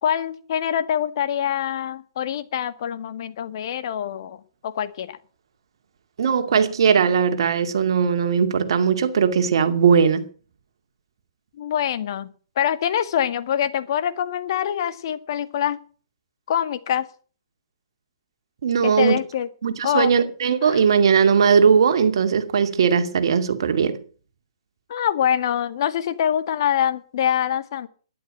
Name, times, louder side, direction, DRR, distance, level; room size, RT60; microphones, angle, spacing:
voice 1, 0.0-5.2 11.6-15.8 16.5-17.1 18.8-19.5 19.8-20.1 20.6-20.8 24.9-27.9, left 9 dB, 50° left, 1.8 m, -25 dB
voice 2, 6.2-10.3 18.6-19.2 19.6-24.0, right 6 dB, 60° right, 2.4 m, -19 dB
12.0 x 11.0 x 9.0 m
figure-of-eight pair, 135°, 3 cm